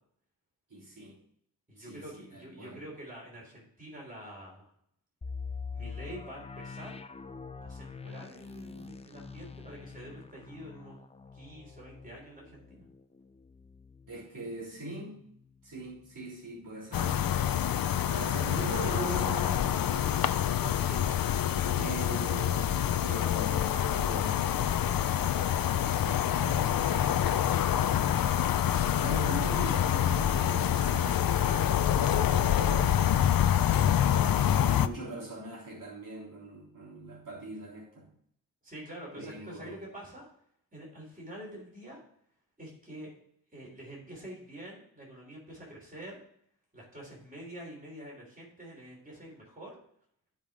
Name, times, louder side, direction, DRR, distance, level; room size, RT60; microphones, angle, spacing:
voice 1, 0.7-1.2 1.8-2.8 14.1-15.2 15.6-17.2 18.1-20.3 21.8-24.8 25.6-28.1 29.0-33.8 34.6-38.1 39.2-39.8, right 2 dB, 65° right, -5 dB, 3.4 m, -41 dB
voice 2, 1.7-4.7 5.7-7.0 7.5-11.0 11.3-12.9 18.3-18.4 20.6-21.0 21.7-21.9 38.6-40.3 40.7-42.0 42.6-43.1 43.5-46.2 46.7-49.8, right 1 dB, 25° right, -2 dB, 3.6 m, -46 dB
sound 1, 5.2-14.9 15.3-15.4 15.9-16.1, left 5 dB, 20° left, 0.4 m, -44 dB
sound 2, 16.9-34.9, left 10 dB, 75° left, 0.5 m, -26 dB
14.0 x 5.2 x 3.7 m, 0.66 s
wide cardioid pair, 135°, 35 cm